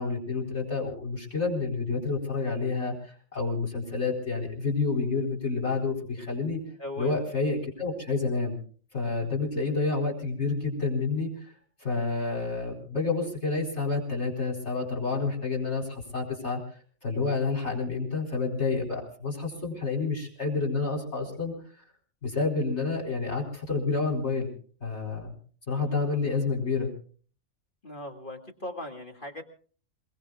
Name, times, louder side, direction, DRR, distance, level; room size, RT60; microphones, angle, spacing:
voice 1, 0.0-6.6 7.0-8.6 8.9-11.3 11.8-16.6 17.0-21.5 22.2-24.5 24.8-25.4 25.7-26.9, left 4 dB, 55° left, -1 dB, 4.6 m, -29 dB
voice 2, 6.7-7.3 27.8-29.4, left 1 dB, 40° left, 2 dB, 2.3 m, -39 dB
28.5 x 19.5 x 2.3 m, 0.43 s
omnidirectional pair, 1.4 m